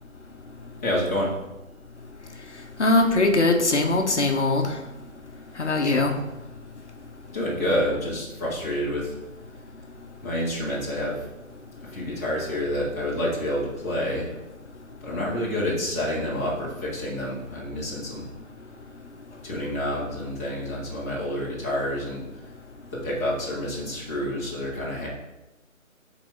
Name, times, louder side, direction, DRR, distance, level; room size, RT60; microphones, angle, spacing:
voice 1, 0.8-1.3 5.8-6.0 7.3-9.1 10.2-11.3 11.8-14.3 15.0-18.3 19.4-22.2 22.9-25.1, left 1 dB, 10° left, -9 dB, 0.9 m, -28 dB
voice 2, 2.8-4.7 5.6-6.1, left 2 dB, 55° left, 3 dB, 0.9 m, -21 dB
6.0 x 4.1 x 4.6 m, 0.98 s
figure-of-eight pair, 150°, 41 cm